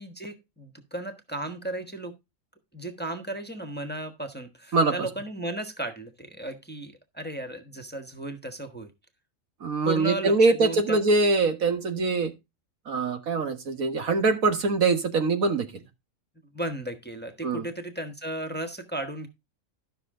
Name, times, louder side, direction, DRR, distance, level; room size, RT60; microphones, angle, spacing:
voice 1, 0.0-2.1 2.7-8.9 9.8-11.0 16.5-19.3, right 1 dB, 10° left, 1.2 m, -35 dB
voice 2, 9.6-12.3 12.9-15.7 17.4-17.6, right 3 dB, 80° right, 1.9 m, -23 dB
12.5 x 6.3 x 3.7 m
omnidirectional pair, 1.4 m